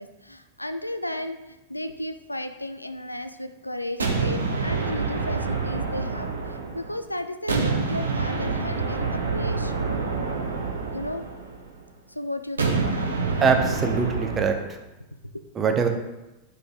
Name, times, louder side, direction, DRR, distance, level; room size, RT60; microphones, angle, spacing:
voice 1, 0.0-9.8 10.9-11.2 12.1-13.1 15.3-15.4, left 1 dB, 85° left, 10 dB, 0.3 m, -34 dB
sound 1, 4.0-7.0 7.5-11.7 12.6-14.7, right 4 dB, 75° right, 0.9 m, -27 dB
voice 2, 13.4-14.8 15.6-15.9, right 5 dB, 25° right, 5 dB, 0.7 m, -23 dB
4.9 x 4.2 x 4.5 m, 1.0 s
figure-of-eight pair, 90°, 0 cm